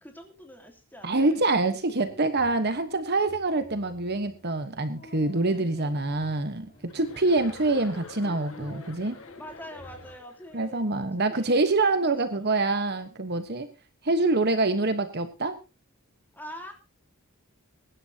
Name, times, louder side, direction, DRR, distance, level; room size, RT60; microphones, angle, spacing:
voice 1, 0.0-1.8 5.5-5.9 9.4-11.6 12.2-12.6 16.3-16.7, equal, 10° left, 3 dB, 3.0 m, -45 dB
voice 2, 1.0-9.2 10.5-13.7 14.0-15.6, right 2 dB, 50° right, 9 dB, 1.3 m, -25 dB
sound 1, 1.5-10.2, left 1 dB, 35° left, 3.9 m, -50 dB
Chuckle chortle, 6.9-10.6, left 4 dB, 70° left, 1.7 m, -48 dB
23.5 x 11.5 x 2.9 m, 0.29 s
head